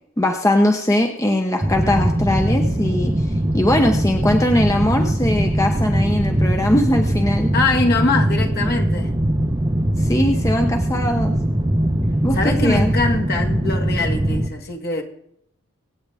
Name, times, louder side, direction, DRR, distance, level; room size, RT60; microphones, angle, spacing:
voice 1, 0.2-3.3 3.5-7.5 10.0-11.3 12.2-12.9, left 1 dB, 15° left, 0.9 m, -20 dB
sound 1, 1.6-14.5, right 1 dB, 20° right, 0.9 m, -21 dB
voice 2, 7.5-9.1 12.3-15.0, left 3 dB, 50° left, 1.8 m, -22 dB
25.0 x 8.9 x 3.5 m
head